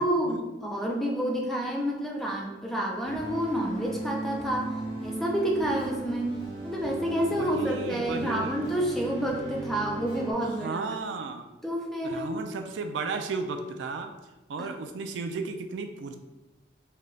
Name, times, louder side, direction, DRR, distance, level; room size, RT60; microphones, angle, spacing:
voice 1, 0.0-10.8 11.6-12.3 14.6-14.7, right 1 dB, ahead, -2 dB, 0.4 m, -29 dB
sound 1, 3.0-10.3, right 1 dB, 30° right, 0.9 m, -37 dB
voice 2, 7.3-8.5 10.6-11.4 12.0-14.1 14.5-16.2, right 4 dB, 75° right, 6 dB, 0.3 m, -34 dB
3.8 x 2.2 x 3.1 m, 1.1 s
head